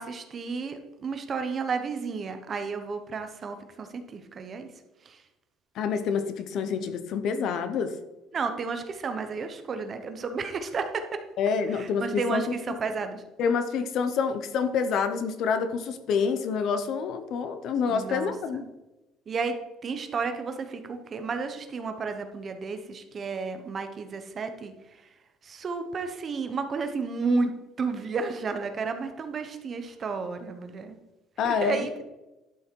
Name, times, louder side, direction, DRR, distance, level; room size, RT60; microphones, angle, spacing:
voice 1, 0.0-4.7 5.0-5.2 8.3-11.2 11.7-13.2 17.9-18.6 19.3-19.6 19.8-25.1 25.4-27.5 27.8-31.0 31.4-31.9, right 4 dB, 25° right, 7 dB, 0.9 m, -32 dB
voice 2, 5.7-8.0 11.4-12.8 13.4-18.6 31.4-31.9, left 6 dB, 45° left, 10 dB, 0.8 m, -27 dB
11.5 x 6.3 x 4.6 m, 1.0 s
cardioid pair, 175°, 0 cm